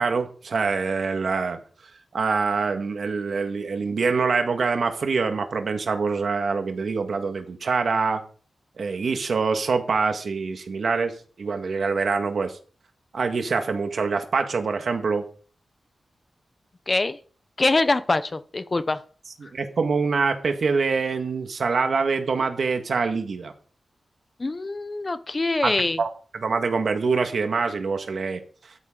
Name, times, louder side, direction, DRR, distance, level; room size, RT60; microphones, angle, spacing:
voice 1, 0.0-1.6 2.1-8.2 8.8-12.6 13.1-15.3 19.4-23.5 25.6-28.4, right 4 dB, 65° right, 6 dB, 1.8 m, -25 dB
voice 2, 16.9-17.2 17.6-19.0 24.4-26.0, left 2 dB, 30° left, 13 dB, 0.7 m, -24 dB
13.5 x 9.5 x 3.9 m, 0.42 s
wide cardioid pair, 135°, 0 cm